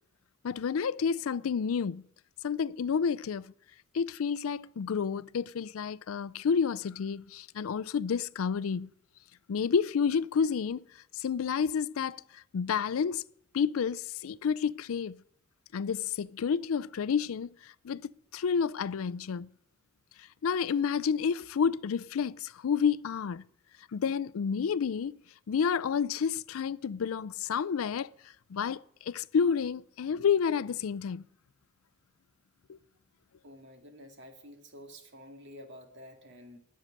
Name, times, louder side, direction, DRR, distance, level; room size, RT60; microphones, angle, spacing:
voice 1, 0.4-2.0 2.4-3.5 3.9-8.9 9.5-10.8 11.1-13.2 13.5-15.2 15.7-17.5 17.8-19.5 20.4-23.4 23.9-25.2 25.5-28.1 28.5-28.8 29.1-31.2 32.7-32.8, left 6 dB, 75° left, 0.4 m, -30 dB
voice 2, 33.4-36.6, equal, 60° right, 2.2 m, -50 dB
12.5 x 6.5 x 9.8 m
head